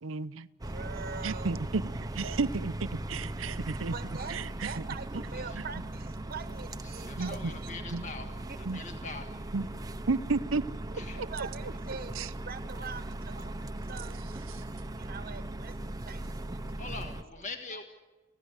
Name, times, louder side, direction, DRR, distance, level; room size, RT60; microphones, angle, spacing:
voice 1, 0.0-0.5 1.2-2.7 3.1-3.9 4.3-4.7 5.5-5.6 7.2-7.5 7.9-8.0 8.7-8.8 9.5-9.7 10.1-10.6 11.4-11.5 12.2-12.3 14.5-14.6, right 4 dB, 75° right, 15 dB, 0.7 m, -32 dB
sound 1, 0.6-17.2, right 1 dB, 20° right, 0.8 m, -39 dB
voice 2, 0.7-1.7 3.9-7.7 11.1-14.6 14.9-16.6 17.7-17.8, right 5 dB, 50° right, 10 dB, 1.1 m, -44 dB
voice 3, 6.8-8.3 8.6-9.3 10.9-11.2 16.8-17.8, left 3 dB, 40° left, 4 dB, 1.7 m, -43 dB
27.0 x 16.0 x 8.1 m, 1.2 s
head